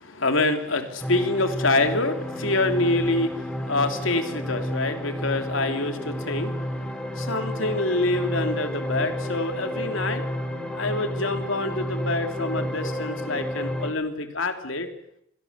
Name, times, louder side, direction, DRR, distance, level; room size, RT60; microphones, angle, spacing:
voice 1, 0.0-10.3 10.7-14.9, left 2 dB, 85° left, 6 dB, 3.2 m, -26 dB
sound 1, 1.0-13.9, equal, 5° left, 3.2 m, -31 dB
25.0 x 18.0 x 8.3 m, 0.74 s
head